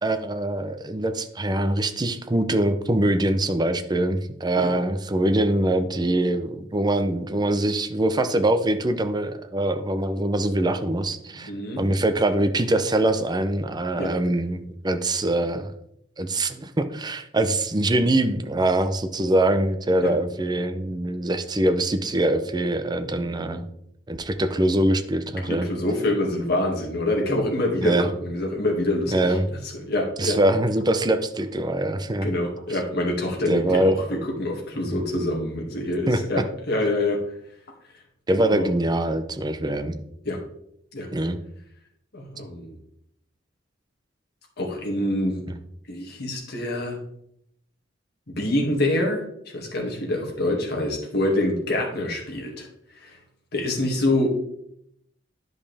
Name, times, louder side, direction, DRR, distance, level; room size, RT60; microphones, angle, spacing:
voice 1, 0.0-11.5 11.8-15.7 16.2-23.6 24.1-25.7 27.8-28.1 29.1-29.5 30.2-32.3 33.5-34.0 34.9-35.0 36.1-36.2 38.3-40.0 41.1-41.4 45.5-45.6, right 1 dB, 20° right, 9 dB, 0.6 m, -23 dB
voice 2, 11.4-11.8 13.9-14.1 20.0-20.1 23.1-23.6 25.4-29.4 29.7-30.4 32.2-37.2 38.3-38.7 40.3-40.4 40.9-41.1 42.1-42.7 44.6-45.4 45.9-47.0 48.3-49.2 49.5-52.7 53.0-53.2 53.5-54.3, left 1 dB, 60° left, 0 dB, 2.2 m, -26 dB
10.5 x 5.3 x 3.4 m, 0.74 s
head